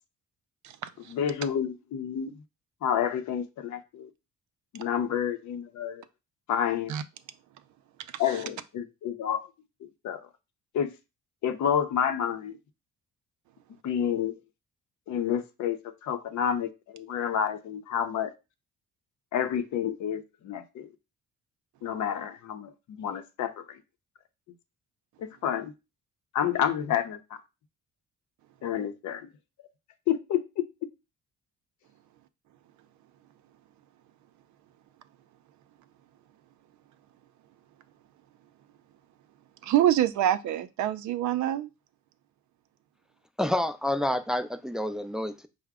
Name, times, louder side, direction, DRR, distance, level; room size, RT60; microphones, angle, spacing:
voice 1, 1.1-2.3 2.8-4.1 4.7-6.0 6.5-6.9 8.2-9.5 9.8-10.3 10.7-10.9 11.4-12.6 13.8-14.4 15.1-18.3 19.3-20.9 21.8-23.5 25.2-25.7 26.3-27.2 28.6-29.3 30.1-30.6, left 9 dB, 70° left, 0.6 m, -29 dB
voice 2, 39.6-41.7, right 12 dB, 70° right, 0.5 m, -25 dB
voice 3, 43.4-45.5, left 1 dB, ahead, 0.3 m, -28 dB
4.7 x 2.1 x 3.5 m
cardioid pair, 90°, 30 cm